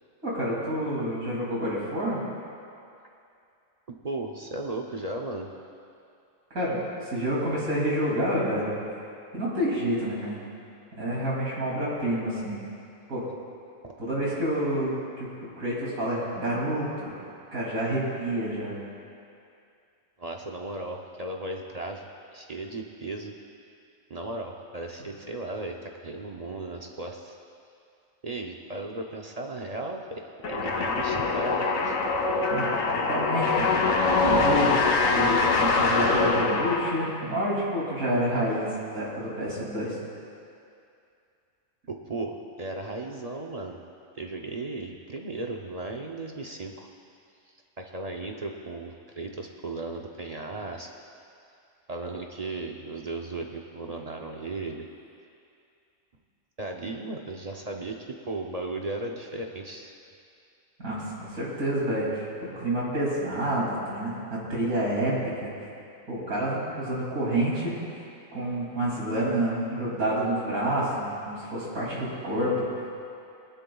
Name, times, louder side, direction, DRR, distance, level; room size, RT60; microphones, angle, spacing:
voice 1, 0.2-2.2 6.5-6.8 7.0-8.7 9.3-10.4 10.9-12.6 13.1-13.2 14.0-17.2 17.5-18.7 32.5-32.7 32.9-33.7 34.3-34.7 35.1-40.0 60.8-62.3 62.5-65.5 66.1-67.7 68.3-72.7, right 1 dB, 80° right, -6 dB, 3.2 m, -28 dB
voice 2, 3.9-5.5 13.8-13.9 20.2-22.0 22.3-23.3 24.1-27.4 28.2-32.0 41.9-43.8 44.1-46.9 47.8-50.9 51.9-54.8 56.6-59.9, right 2 dB, 40° right, 1 dB, 0.6 m, -36 dB
sound 1, 30.4-37.2, left 3 dB, 75° left, 1.4 m, -24 dB
20.0 x 12.0 x 2.3 m, 2.5 s
omnidirectional pair, 1.4 m